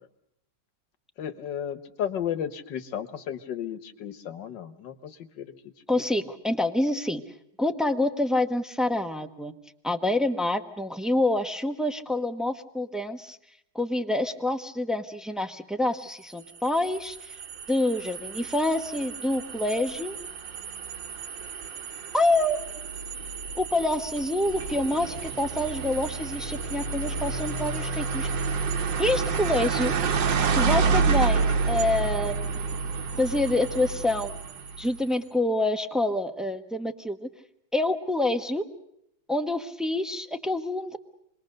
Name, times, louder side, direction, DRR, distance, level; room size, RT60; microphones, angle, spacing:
voice 1, 1.2-5.5 5.9-6.0, left 9 dB, 70° left, 11 dB, 1.9 m, -34 dB
voice 2, 5.9-7.2 7.6-9.5 9.8-13.4 13.7-17.4 17.7-20.2 22.1-22.6 23.5-28.3 29.0-29.9 30.5-32.7 33.2-34.3 34.8-37.3 37.7-38.6 39.3-41.0, left 2 dB, ahead, 6 dB, 0.7 m, -27 dB
sound 1, 16.5-35.0, right 5 dB, 75° right, 1.9 m, -29 dB
27.0 x 21.0 x 6.6 m, 0.78 s
omnidirectional pair, 2.0 m